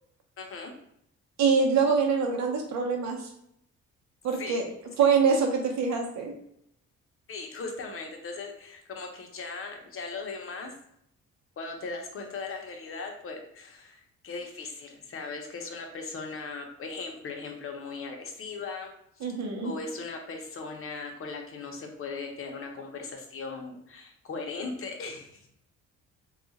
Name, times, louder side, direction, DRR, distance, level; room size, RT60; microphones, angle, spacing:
voice 1, 0.4-0.7 4.3-4.6 5.0-5.1 7.3-10.7 11.6-18.9 19.2-19.3 19.6-25.5, left 4 dB, 45° left, 3 dB, 0.8 m, -38 dB
voice 2, 1.4-3.3 4.2-4.7 5.0-6.3 19.2-19.7, right 5 dB, 65° right, 1 dB, 0.8 m, -24 dB
2.4 x 2.3 x 4.0 m, 0.73 s
cardioid pair, 90°, 30 cm